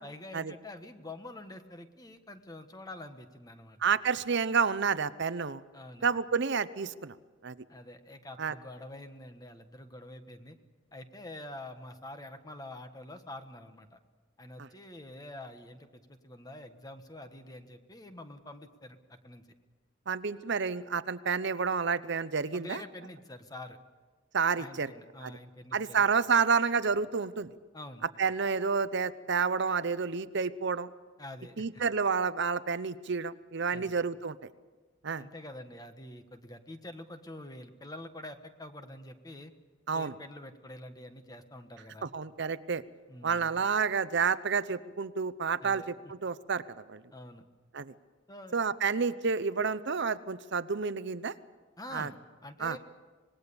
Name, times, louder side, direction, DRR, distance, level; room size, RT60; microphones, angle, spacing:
voice 1, 0.0-3.9 5.7-6.1 7.7-10.6 10.9-14.0 14.4-19.4 22.5-23.8 24.5-26.1 27.7-28.1 31.2-31.8 33.7-34.0 35.2-39.5 39.9-42.1 43.1-43.6 45.6-45.9 47.1-47.5 48.3-48.6 51.8-52.8, left 1 dB, 20° left, 8 dB, 1.3 m, -46 dB
voice 2, 3.8-5.6 6.0-7.2 7.4-7.6 8.4-8.5 14.6-14.7 20.1-22.8 24.3-24.9 25.2-25.3 25.7-27.5 28.2-30.9 31.6-34.4 35.0-35.2 39.9-40.1 42.1-42.8 43.2-45.9 46.2-46.6 46.9-47.0 47.7-47.9 48.5-51.3 51.9-52.1 52.6-52.8, right 5 dB, 60° right, 15 dB, 0.8 m, -29 dB
25.5 x 20.0 x 7.0 m, 1.3 s
head